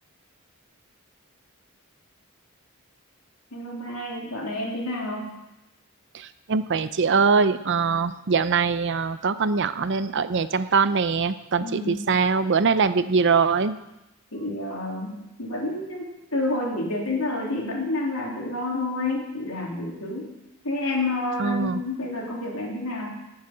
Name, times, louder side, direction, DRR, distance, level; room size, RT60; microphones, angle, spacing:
voice 1, 3.5-5.4 11.6-12.1 14.3-20.3 20.6-23.2, left 2 dB, 80° left, -2 dB, 3.5 m, -29 dB
voice 2, 6.1-13.8 21.4-21.8, right 5 dB, 55° right, 13 dB, 0.6 m, -22 dB
18.0 x 7.4 x 6.1 m, 0.93 s
head